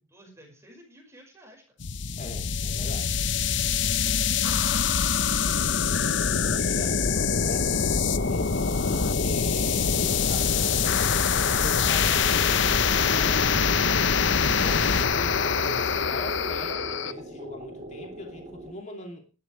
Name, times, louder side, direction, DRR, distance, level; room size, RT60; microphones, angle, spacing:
voice 1, 0.0-1.6 3.8-5.3 7.2-7.8, equal, 15° right, 0 dB, 5.4 m, -52 dB
sound 1, 1.8-17.1, left 6 dB, 60° left, 0.9 m, -24 dB
voice 2, 2.2-3.1 6.5-7.0 7.4-7.8 8.2-11.3 11.6-14.1 14.6-19.3, left 1 dB, 35° left, 2 dB, 2.8 m, -41 dB
sound 2, 6.3-18.7, right 1 dB, 30° right, 3.5 m, -43 dB
18.0 x 12.0 x 3.3 m, 0.33 s
head